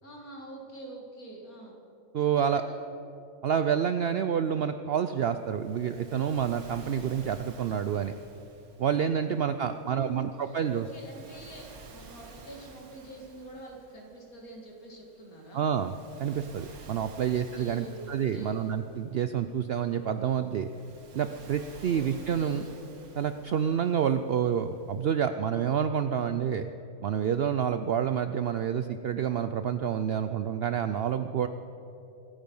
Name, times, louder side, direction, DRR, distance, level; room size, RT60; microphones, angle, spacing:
voice 1, 0.0-1.8 2.4-2.8 9.2-15.7 17.1-18.7 21.8-22.1 22.3-22.7, right 2 dB, 75° left, 0 dB, 2.8 m, -45 dB
voice 2, 2.1-2.6 3.4-8.2 8.8-10.8 15.5-15.9 16.2-20.7 21.1-22.6 23.2-26.7 27.0-31.5, right 8 dB, 70° right, 9 dB, 0.5 m, -28 dB
Waves surf, 5.1-25.1, right 3 dB, 85° right, 1.9 m, -53 dB
25.0 x 9.0 x 5.4 m, 2.9 s
omnidirectional pair, 1.5 m